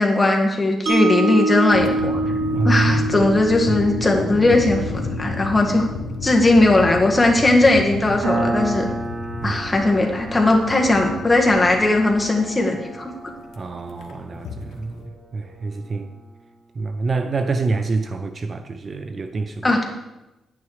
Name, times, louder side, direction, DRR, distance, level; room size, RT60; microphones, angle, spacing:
voice 1, 0.0-2.2 2.6-5.9 6.2-8.9 9.4-13.1 19.6-19.8, left 2 dB, 15° left, 1.8 m, -18 dB
Mallet percussion, 0.9-7.0, right 3 dB, 50° right, 2.1 m, -26 dB
sound 1, 1.7-15.0, left 4 dB, 80° left, 1.2 m, -32 dB
voice 2, 2.5-3.1 3.7-3.8 9.4-9.9 13.6-15.0 15.3-16.1 16.8-19.7, right 3 dB, 35° right, 0.6 m, -26 dB
Piano, 8.2-15.4, right 2 dB, 70° right, 3.3 m, -31 dB
10.5 x 9.5 x 4.9 m
cardioid pair, 120°, 0 cm